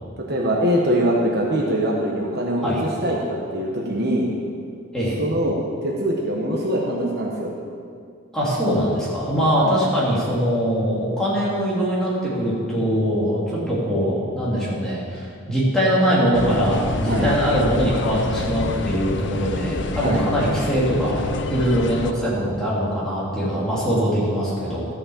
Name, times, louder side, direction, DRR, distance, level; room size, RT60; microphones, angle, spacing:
voice 1, 0.2-4.3 5.2-7.5 9.6-9.7 17.1-17.3 20.0-20.3, right 1 dB, 50° right, -2 dB, 1.3 m, -23 dB
voice 2, 8.3-21.2 21.5-24.9, equal, 5° left, -8 dB, 3.0 m, -22 dB
sound 1, 16.3-22.1, left 3 dB, 55° left, 0.6 m, -27 dB
13.5 x 6.6 x 7.2 m, 2.3 s
head